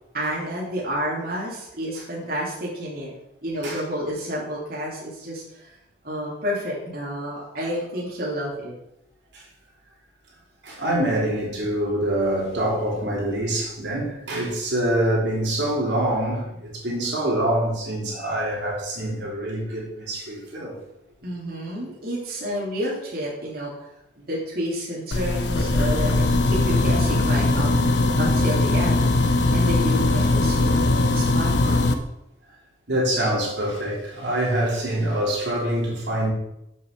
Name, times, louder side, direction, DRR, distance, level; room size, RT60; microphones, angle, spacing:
voice 1, 0.1-3.1 3.4-5.7 6.0-8.7 21.2-23.9 24.2-27.7 28.2-32.0, equal, 55° right, -5 dB, 3.1 m, -30 dB
voice 2, 10.6-20.8 32.9-36.3, right 1 dB, 75° right, -4 dB, 3.3 m, -25 dB
sound 1, 25.1-31.9, left 2 dB, 80° left, 1.0 m, -20 dB
7.9 x 6.4 x 6.8 m, 0.83 s
head